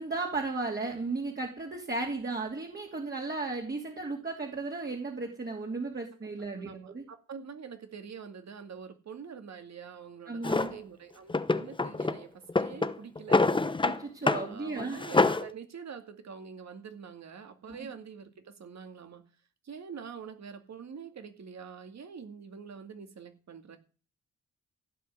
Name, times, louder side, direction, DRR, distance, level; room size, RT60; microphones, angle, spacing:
voice 1, 0.0-7.0 10.3-10.7 13.8-15.0 17.7-17.8, right 3 dB, 30° right, 0 dB, 2.7 m, -35 dB
voice 2, 6.6-13.7 14.5-19.2 19.6-23.8, right 6 dB, 55° right, 7 dB, 2.3 m, -45 dB
Drawer open or close, 10.4-10.7 11.3-12.2 12.5-14.0 14.3-14.5 14.8-15.5, left 3 dB, 15° left, 0.9 m, -26 dB
15.5 x 5.7 x 9.5 m, 0.37 s
cardioid pair, 120°, 32 cm